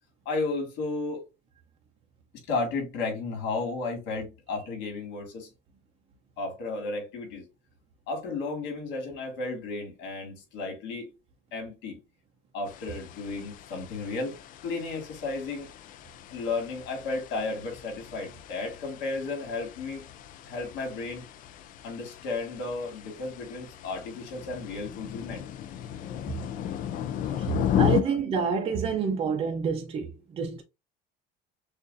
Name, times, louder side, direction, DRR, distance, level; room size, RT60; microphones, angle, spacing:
voice 1, 0.3-1.2 2.5-5.5 6.4-7.4 8.1-11.1 11.5-12.0 12.5-14.4 14.6-15.7 16.3-20.0 20.4-21.2 21.8-25.4, left 3 dB, 75° left, 2.3 m, -33 dB
sound 1, 12.7-28.0, left 9 dB, 45° left, 0.4 m, -35 dB
voice 2, 27.4-30.6, right 6 dB, 30° right, 0.5 m, -28 dB
6.6 x 2.5 x 2.5 m
cardioid pair, 170°, 19 cm